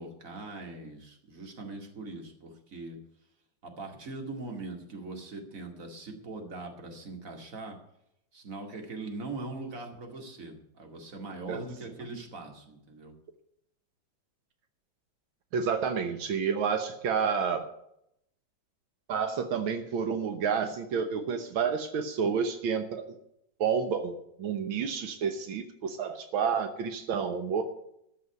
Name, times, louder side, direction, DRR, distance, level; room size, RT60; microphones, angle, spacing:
voice 1, 0.0-3.0 3.6-7.8 8.3-13.1, right 3 dB, 40° right, 3 dB, 2.6 m, -41 dB
voice 2, 15.5-17.7 19.1-23.1 23.6-27.6, right 6 dB, 85° right, 7 dB, 1.9 m, -30 dB
13.5 x 5.6 x 9.5 m, 0.77 s
omnidirectional pair, 2.2 m